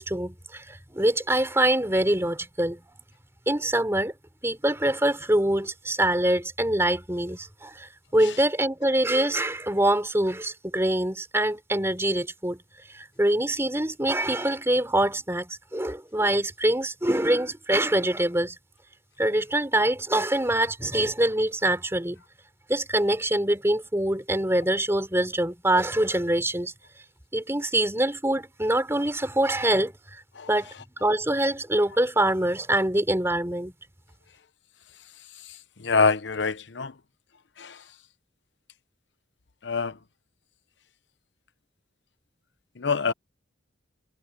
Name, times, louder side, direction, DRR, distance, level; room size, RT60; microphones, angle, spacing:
voice 1, 0.0-2.8 3.5-4.1 4.4-12.6 12.9-18.6 19.2-22.2 22.7-26.7 27.3-30.2 30.5-30.7 31.0-33.7, right 1 dB, 15° right, 3.7 m, -24 dB
voice 2, 35.8-36.9 37.6-37.8 39.6-40.0 42.8-43.1, left 4 dB, 65° left, 0.8 m, -25 dB
head